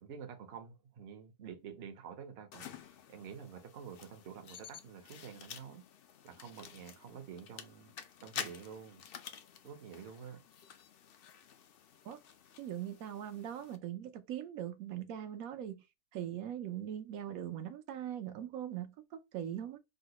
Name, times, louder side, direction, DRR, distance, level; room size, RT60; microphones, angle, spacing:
voice 1, 0.0-2.8 3.1-5.8 6.2-7.9 8.2-9.0 9.6-10.4, right 7 dB, 60° right, 0.8 m, -48 dB
sound 1, 2.5-13.8, left 8 dB, 70° left, 0.5 m, -50 dB
voice 2, 12.6-15.8 16.1-19.8, right 10 dB, 85° right, 1.0 m, -41 dB
3.8 x 2.1 x 2.8 m
omnidirectional pair, 1.5 m